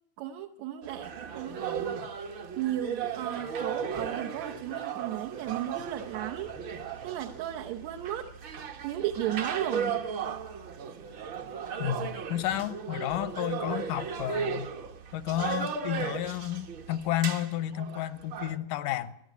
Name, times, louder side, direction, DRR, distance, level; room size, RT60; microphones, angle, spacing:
voice 1, 0.2-8.3 8.8-9.9, right 12 dB, 70° right, 2.0 m, -35 dB
sound 1, 0.8-18.6, right 7 dB, 50° right, 1.5 m, -36 dB
voice 2, 11.8-14.7 15.1-19.1, left 13 dB, 80° left, 2.5 m, -31 dB
23.5 x 12.5 x 9.5 m
omnidirectional pair, 3.7 m